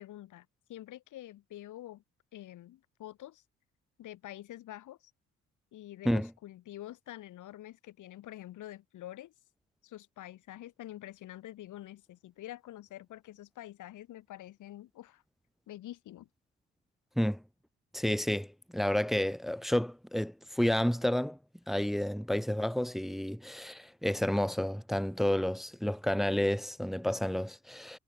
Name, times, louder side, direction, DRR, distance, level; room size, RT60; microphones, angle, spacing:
voice 1, 0.0-2.0 2.3-3.4 4.0-5.1 5.7-9.3 9.8-15.2 15.7-16.3, left 14 dB, 80° left, 3.2 m, -47 dB
voice 2, 17.9-21.4 21.7-28.0, left 1 dB, ahead, 0.4 m, -30 dB
cardioid pair, 90°, 30 cm